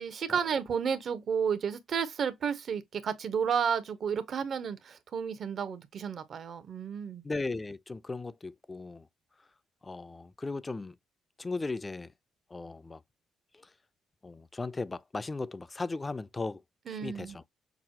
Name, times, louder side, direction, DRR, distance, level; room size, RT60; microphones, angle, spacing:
voice 1, 0.0-7.2 16.9-17.4, right 7 dB, 60° right, 0.7 m, -32 dB
voice 2, 7.2-9.1 9.8-10.9 11.4-12.1 12.5-13.0 14.2-16.6 16.9-17.4, left 3 dB, 25° left, 0.4 m, -37 dB
6.0 x 2.1 x 2.8 m
supercardioid pair, 60°, 0 cm